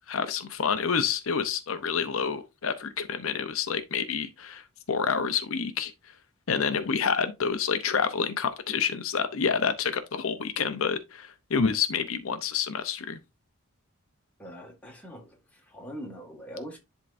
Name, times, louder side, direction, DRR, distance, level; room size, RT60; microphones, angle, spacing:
voice 1, 0.1-5.9 6.5-13.2, left 6 dB, 70° left, 0.6 m, -28 dB
voice 2, 14.4-16.8, equal, 5° left, 1.7 m, -42 dB
11.0 x 3.6 x 2.6 m
head